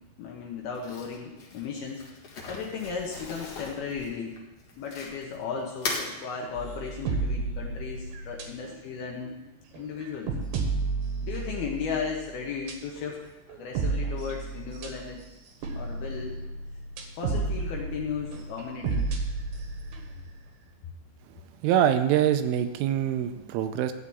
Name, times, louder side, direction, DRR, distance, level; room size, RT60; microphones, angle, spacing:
voice 1, 0.2-2.0 2.5-4.4 4.8-9.3 9.8-10.3 11.2-15.2 15.7-16.4 17.2-19.1, left 6 dB, 70° left, -1 dB, 2.4 m, -35 dB
Crumpling crinkling, 0.7-5.3 5.7-6.1, left 3 dB, 55° left, 1.7 m, -37 dB
sound 1, 6.6-8.8 9.2-9.3 9.7-12.3 12.7-13.1 13.5-15.3 15.6-20.3, right 3 dB, 65° right, 2.8 m, -32 dB
voice 2, 21.6-23.9, right 10 dB, 90° right, 9 dB, 3.2 m, -24 dB
14.0 x 4.9 x 8.6 m, 1.0 s
omnidirectional pair, 5.6 m